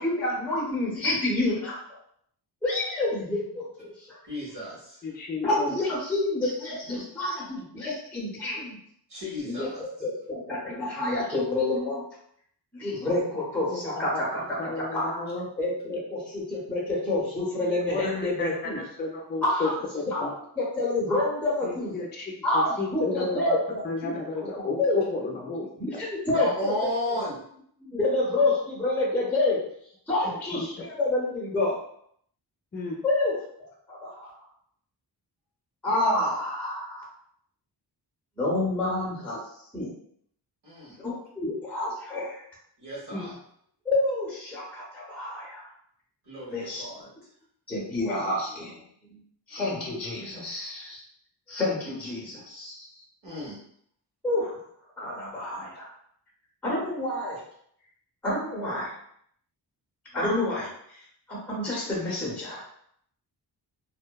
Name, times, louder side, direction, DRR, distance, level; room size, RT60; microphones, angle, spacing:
voice 1, 0.0-1.8 2.6-4.2 5.4-8.7 9.4-9.7 10.0-12.0 12.7-15.1 15.6-18.8 19.4-19.7 20.1-20.2 20.6-21.9 22.4-24.5 24.8-25.0 25.8-26.9 27.8-29.6 30.1-31.8 33.0-34.3 35.8-37.0 38.4-39.4 39.7-39.9 40.9-42.4 43.8-45.7 46.5-46.8 47.7-48.8 49.1-49.2 49.5-51.0 51.5-52.9 54.2-54.6 55.0-55.9 56.6-57.4 58.2-58.9 60.1-62.6, left 2 dB, 5° left, -5 dB, 0.8 m, -28 dB
voice 2, 4.3-5.0 9.1-9.8 26.3-27.4 40.6-41.0 42.8-43.4 46.2-47.1 53.2-53.6, equal, 70° right, -7 dB, 1.3 m, -34 dB
voice 3, 5.0-5.7 13.7-14.2 14.6-15.4 15.9-16.0 17.6-18.5 18.7-19.7 20.2-20.3 21.6-23.6 23.8-26.0 30.2-30.7 32.7-33.0 43.1-43.3, left 3 dB, 25° left, 0 dB, 0.4 m, -33 dB
2.7 x 2.0 x 2.2 m, 0.67 s
wide cardioid pair, 115°, 42 cm